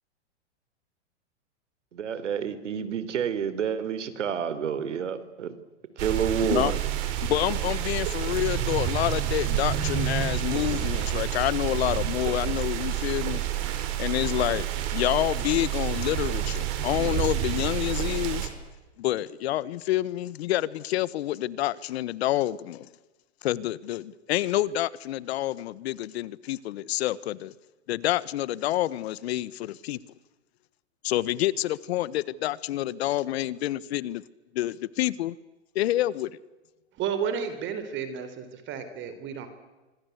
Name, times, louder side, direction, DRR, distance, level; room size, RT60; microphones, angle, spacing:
voice 1, 1.9-5.5 6.0-6.7, right 7 dB, 85° right, 3.8 m, -29 dB
sound 1, 6.0-18.5, right 12 dB, 50° right, 5.6 m, -29 dB
voice 2, 7.2-13.4 14.0-14.7 14.9-18.5 19.0-22.9 23.4-27.5 27.9-30.0 31.0-34.2 34.5-35.3 35.7-36.4, left 14 dB, 60° left, 1.4 m, -28 dB
voice 3, 36.9-39.5, right 7 dB, 30° right, 4.1 m, -32 dB
26.0 x 25.0 x 8.3 m
hypercardioid pair, 135°, 35 cm